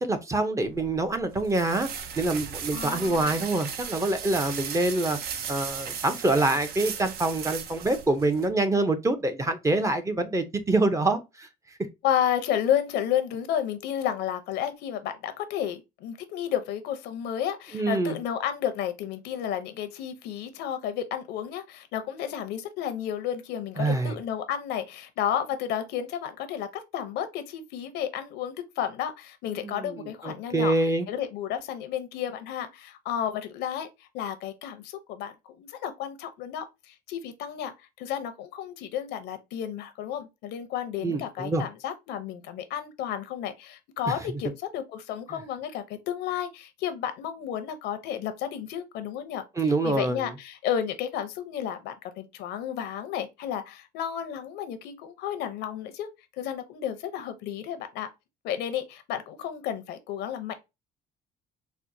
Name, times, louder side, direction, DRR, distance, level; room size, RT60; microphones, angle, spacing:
voice 1, 0.0-5.2 5.5-11.5 17.7-18.2 23.8-24.2 29.6-31.1 41.0-41.6 44.1-44.4 45.3-45.4 49.6-50.3, right 2 dB, 20° right, 0.5 m, -26 dB
sound 1, 0.6-8.5, right 7 dB, 70° right, 0.6 m, -37 dB
voice 2, 2.7-3.3 12.0-26.7 26.9-30.7 31.1-35.3 35.6-37.7 38.0-49.4 49.8-56.1 56.4-58.1 58.4-60.5, left 9 dB, 85° left, 0.6 m, -32 dB
4.3 x 2.1 x 2.6 m
cardioid pair, 110°, 17 cm